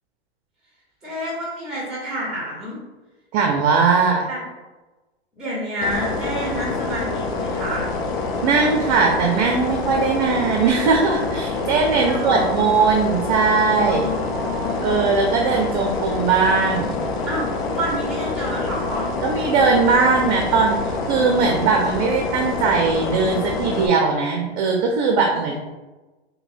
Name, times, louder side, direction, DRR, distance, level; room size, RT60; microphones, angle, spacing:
voice 1, 1.0-2.8 4.3-4.4 5.4-7.9 12.0-12.6 13.9-15.0 15.5-15.6 17.3-19.1 25.2-25.6, equal, ahead, -5 dB, 1.2 m, -29 dB
voice 2, 3.3-4.2 8.4-14.1 14.8-17.0 19.2-25.6, right 4 dB, 45° right, 2 dB, 0.5 m, -19 dB
sound 1, 5.8-23.9, left 3 dB, 60° left, 0.6 m, -26 dB
5.5 x 2.2 x 2.5 m, 1.1 s
hypercardioid pair, 110°, 32 cm